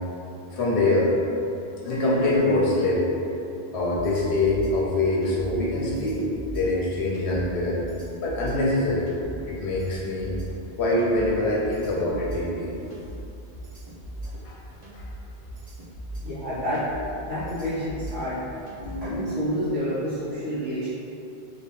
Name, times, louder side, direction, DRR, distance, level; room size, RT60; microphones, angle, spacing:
voice 1, 0.5-1.1 1.8-3.0 3.7-6.2 6.5-7.8 8.2-9.1 9.5-10.3 10.8-12.7 14.4-14.6 14.9-15.1 18.8-19.3, left 2 dB, 70° left, -5 dB, 1.0 m, -24 dB
sound 1, 3.9-19.2, right 1 dB, 40° right, 0.6 m, -39 dB
voice 2, 16.2-16.9 17.2-18.4 18.9-20.9, equal, 70° right, -12 dB, 1.7 m, -29 dB
3.3 x 2.9 x 3.2 m, 2.8 s
omnidirectional pair, 1.1 m